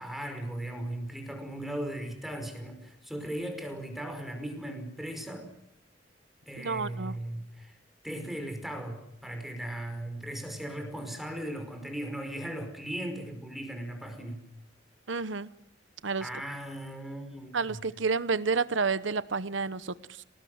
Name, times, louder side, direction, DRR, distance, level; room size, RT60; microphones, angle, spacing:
voice 1, 0.0-5.5 6.5-7.8 8.0-14.5 16.2-17.8, right 1 dB, ahead, 5 dB, 5.2 m, -37 dB
voice 2, 6.6-7.1 15.1-15.5 16.0-16.3 17.5-20.2, right 4 dB, 85° right, 15 dB, 1.0 m, -30 dB
28.5 x 19.5 x 8.0 m, 0.74 s
head